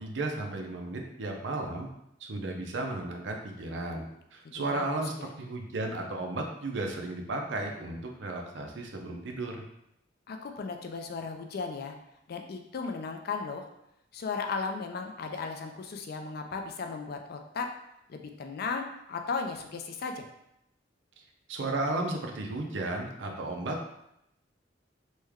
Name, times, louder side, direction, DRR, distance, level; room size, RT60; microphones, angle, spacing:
voice 1, 0.0-1.9 2.2-9.6 21.2-21.3 21.5-23.9, right 2 dB, 70° right, 2 dB, 0.5 m, -34 dB
voice 2, 4.4-4.9 5.2-5.3 10.3-12.0 12.3-13.7 14.1-17.7 18.1-20.3, left 4 dB, 55° left, 4 dB, 0.4 m, -36 dB
3.1 x 2.2 x 3.4 m, 0.80 s
head